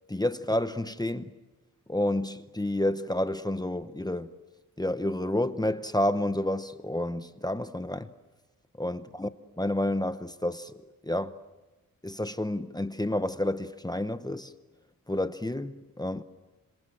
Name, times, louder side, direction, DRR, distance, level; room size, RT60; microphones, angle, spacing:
voice 1, 0.1-1.3 1.9-4.3 4.8-8.1 8.8-9.3 9.6-10.7 11.0-11.3 12.0-14.5 15.1-16.2, left 1 dB, 10° left, 0.8 m, -29 dB
27.0 x 26.5 x 7.5 m
wide cardioid pair, 135°, 35 cm